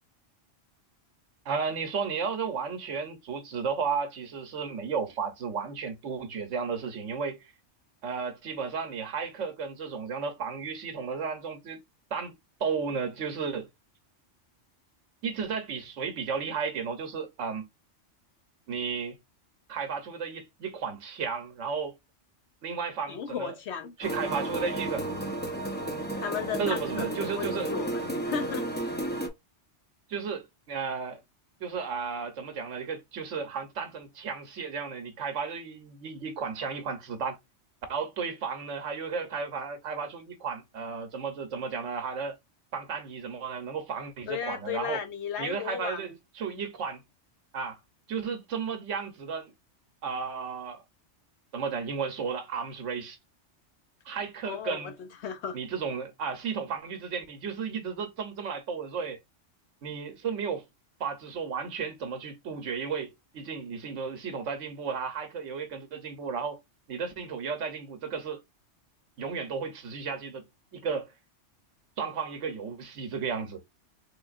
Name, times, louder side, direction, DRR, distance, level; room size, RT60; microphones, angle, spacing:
voice 1, 1.4-7.5 8.0-11.8 12.1-12.3 12.6-13.7 15.2-17.7 18.7-19.2 19.7-21.9 22.6-23.5 24.0-25.1 26.6-27.7 30.1-31.2 31.6-37.4 37.9-42.4 42.7-45.0 45.4-47.0 47.5-47.8 48.1-49.5 50.0-50.8 51.5-53.2 54.0-54.9 55.5-59.2 59.8-60.6 61.0-66.6 66.9-68.4 69.2-70.5 70.7-71.1 72.0-73.6, right 5 dB, 80° right, 1.2 m, -33 dB
voice 2, 23.1-23.9 26.2-28.7 44.3-46.1 54.5-55.6, left 7 dB, 65° left, 1.0 m, -35 dB
sound 1, 24.0-29.3, right 1 dB, 10° left, 0.5 m, -32 dB
3.7 x 3.4 x 2.5 m
omnidirectional pair, 1.2 m